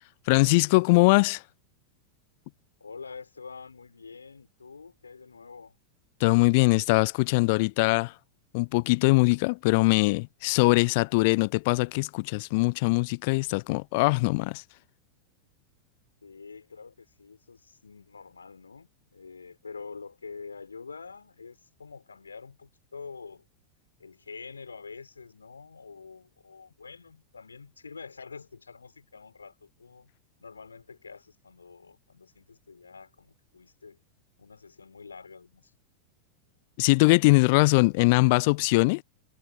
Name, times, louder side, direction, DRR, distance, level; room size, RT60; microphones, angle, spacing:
voice 1, 0.3-1.4 6.2-8.1 8.5-14.6 36.8-39.0, left 27 dB, 50° left, 0.3 m, -22 dB
voice 2, 2.8-5.7 16.2-23.4 24.0-30.1 30.4-34.0 34.4-35.8, left 5 dB, 75° left, 3.9 m, -46 dB
figure-of-eight pair, 90°, 0 cm